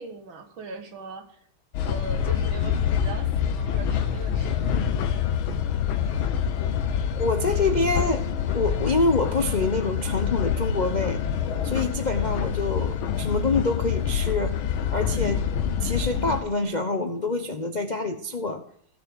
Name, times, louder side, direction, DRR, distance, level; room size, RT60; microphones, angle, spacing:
voice 1, 0.0-1.4 1.8-4.9, right 3 dB, 70° right, 6 dB, 2.4 m, -40 dB
sound 1, 1.7-16.4, left 8 dB, 85° left, 1.7 m, -26 dB
voice 2, 7.2-8.2 8.5-11.2 11.6-14.6 14.9-15.5 15.8-18.6, left 3 dB, 45° left, 5 dB, 0.5 m, -26 dB
16.0 x 6.8 x 6.4 m, 0.65 s
omnidirectional pair, 2.2 m